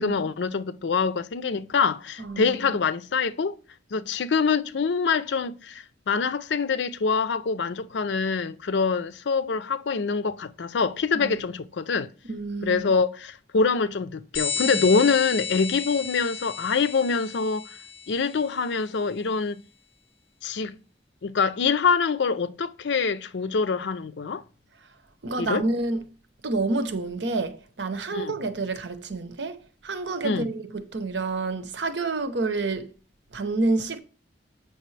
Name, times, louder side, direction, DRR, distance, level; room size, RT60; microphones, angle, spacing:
voice 1, 0.0-3.6 3.9-12.1 12.6-17.6 18.1-19.6 20.4-20.7 21.2-24.4 25.4-25.6 28.1-28.3 30.2-30.5, left 5 dB, 90° left, 0.5 m, -25 dB
voice 2, 2.2-2.6 11.1-11.4 12.3-12.9 14.7-14.9 25.2-26.0 26.4-32.9 33.3-34.0, right 3 dB, 85° right, 0.8 m, -28 dB
sound 1, 14.3-18.6, left 6 dB, 55° left, 2.6 m, -33 dB
7.8 x 5.9 x 3.2 m
head